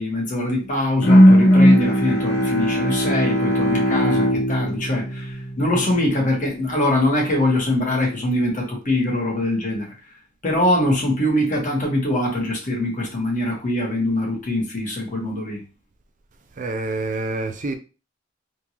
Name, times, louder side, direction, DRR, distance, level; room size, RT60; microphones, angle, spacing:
voice 1, 0.0-9.9 10.4-15.6, left 1 dB, 40° left, 1.4 m, -23 dB
Bowed string instrument, 1.0-6.1, equal, 60° left, 1.1 m, -17 dB
voice 2, 16.6-17.7, right 2 dB, 40° right, 0.4 m, -27 dB
3.5 x 2.8 x 2.9 m
head